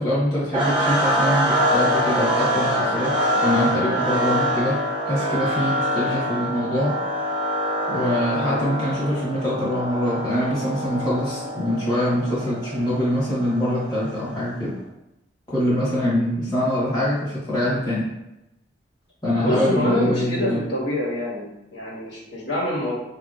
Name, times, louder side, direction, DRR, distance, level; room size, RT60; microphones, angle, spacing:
voice 1, 0.0-4.8 5.0-6.9 7.9-14.7 15.5-18.1 19.2-20.6, equal, 20° left, -9 dB, 1.2 m, -24 dB
sound 1, 0.5-14.6, equal, 25° right, 0.6 m, -25 dB
voice 2, 19.4-22.9, left 1 dB, 70° left, -7 dB, 1.4 m, -26 dB
5.3 x 2.7 x 2.4 m, 0.90 s
head